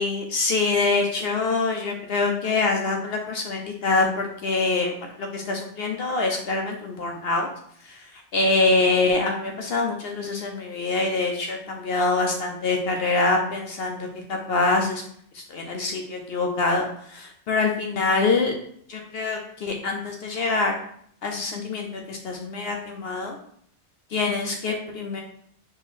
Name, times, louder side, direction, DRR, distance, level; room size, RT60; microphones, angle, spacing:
voice 1, 0.0-7.5 7.8-15.0 15.3-18.6 18.9-20.7 21.2-23.4 24.1-25.2, left 3 dB, 60° left, 2 dB, 0.8 m, -25 dB
3.9 x 2.9 x 4.1 m, 0.64 s
omnidirectional pair, 1.2 m